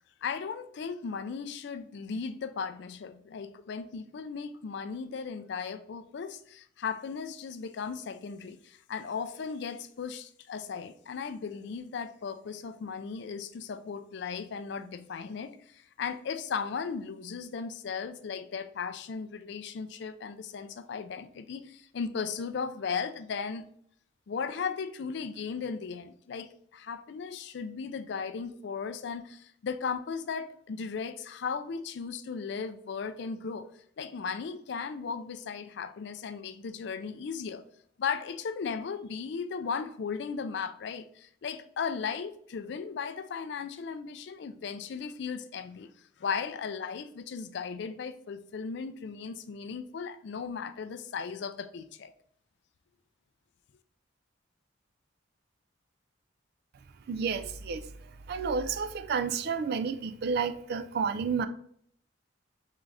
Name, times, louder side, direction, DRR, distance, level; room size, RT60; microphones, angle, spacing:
voice 1, 0.2-23.6 24.3-33.7 34.0-37.6 38.0-45.9 46.2-52.1, left 5 dB, 60° left, 11 dB, 0.4 m, -36 dB
voice 2, 57.1-57.8 58.3-61.5, right 5 dB, 55° right, 10 dB, 0.3 m, -30 dB
3.8 x 3.6 x 3.2 m, 0.63 s
head